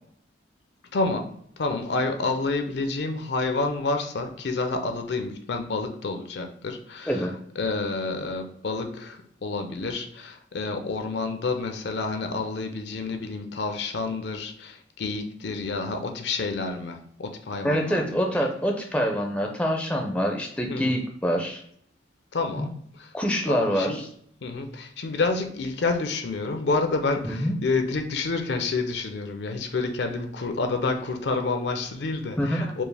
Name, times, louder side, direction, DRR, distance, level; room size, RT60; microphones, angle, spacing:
voice 1, 0.9-1.3 1.6-7.2 7.6-18.3 20.7-21.0 22.3-23.1 23.5-24.0 24.4-32.8, left 3 dB, 65° left, 6 dB, 0.5 m, -29 dB
voice 2, 17.6-21.6 22.6-22.7 23.1-24.1 27.2-27.6 32.4-32.7, equal, 5° left, 1 dB, 0.4 m, -25 dB
4.4 x 2.4 x 3.3 m, 0.66 s
head